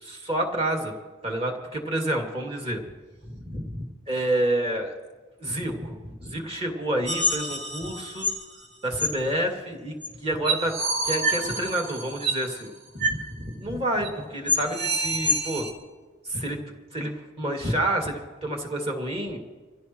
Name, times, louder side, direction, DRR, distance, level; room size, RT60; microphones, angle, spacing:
voice 1, 0.0-0.9 1.2-2.8 3.3-4.9 5.4-8.3 8.8-9.9 10.2-10.8 11.0-15.7 16.2-16.6 16.9-19.4, right 1 dB, 30° right, 1 dB, 2.4 m, -29 dB
sound 1, 7.1-8.4 9.0-9.1 10.0-10.1 10.4-12.5 13.0-13.2 13.5-13.6 14.0-14.1 14.5-15.7, right 1 dB, 55° right, 2.3 m, -27 dB
26.0 x 16.0 x 3.1 m, 1.3 s
head